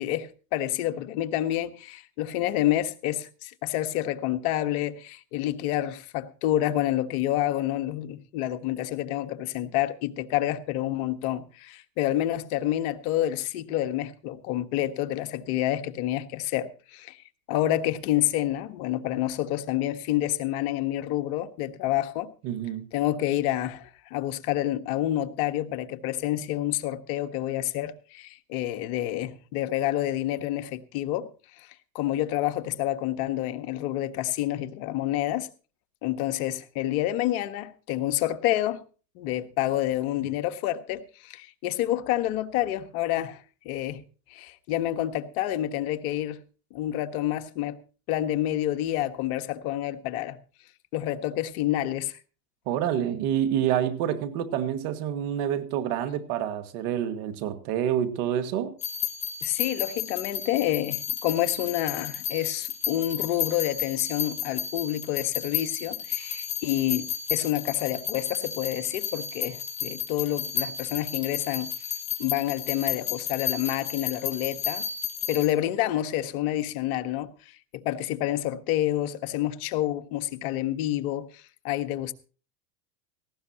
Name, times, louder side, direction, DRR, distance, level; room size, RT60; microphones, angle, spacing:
voice 1, 0.0-17.2 17.5-22.3 22.9-31.7 31.9-35.5 36.0-38.8 39.1-44.0 44.3-46.4 46.7-47.8 48.1-50.4 50.9-52.1 59.4-71.7 72.2-74.9 75.3-77.3 77.7-82.1, left 13 dB, 65° left, 1.5 m, -28 dB
voice 2, 22.4-22.9 52.7-58.7, right 10 dB, 60° right, 2.1 m, -27 dB
sound 1, 58.8-75.5, left 9 dB, 35° left, 3.2 m, -33 dB
18.0 x 15.5 x 2.9 m
supercardioid pair, 110°, 48 cm